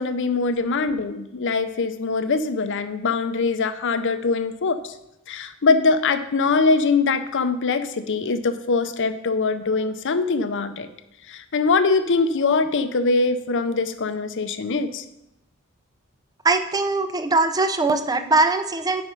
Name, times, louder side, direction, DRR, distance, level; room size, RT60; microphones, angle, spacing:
voice 1, 0.0-4.9 5.3-10.9 11.3-15.0, left 4 dB, 60° left, 10 dB, 0.6 m, -22 dB
voice 2, 16.4-19.0, right 3 dB, 15° right, 9 dB, 0.5 m, -21 dB
9.1 x 5.1 x 5.3 m, 0.86 s
head